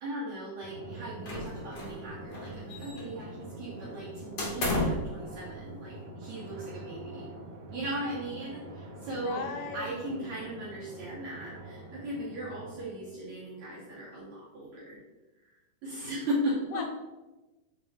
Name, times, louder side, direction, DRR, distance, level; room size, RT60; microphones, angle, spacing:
voice 1, 0.0-7.3 7.7-9.4 9.7-15.0 15.4-16.8, right 1 dB, 60° right, -9 dB, 2.0 m, -37 dB
Drum, 0.6-13.7, right 1 dB, 80° right, 1.8 m, -45 dB
sound 1, 1.3-2.0 2.3-3.2 4.4-5.1, left 1 dB, 60° left, 1.4 m, -32 dB
voice 2, 8.7-10.3 16.7-16.8, left 5 dB, 80° left, 4 dB, 2.6 m, -39 dB
6.5 x 5.1 x 2.9 m, 1.1 s
omnidirectional pair, 4.8 m